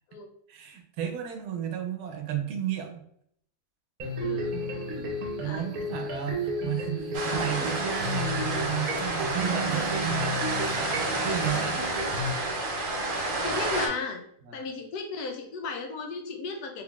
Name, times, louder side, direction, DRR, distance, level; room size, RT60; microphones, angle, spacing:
voice 1, 0.5-3.0 5.4-10.5 11.1-11.8 14.5-14.7, right 10 dB, 90° right, 5 dB, 1.2 m, -33 dB
sound 1, 4.0-12.3, equal, 70° right, 1.2 m, -33 dB
voice 2, 4.2-4.6 5.4-5.7 13.4-14.2 14.5-16.8, left 4 dB, 85° left, 2 dB, 1.2 m, -35 dB
sound 2, 7.1-13.9, right 2 dB, 55° right, 0.6 m, -30 dB
3.6 x 3.3 x 2.3 m, 0.68 s
omnidirectional pair, 1.6 m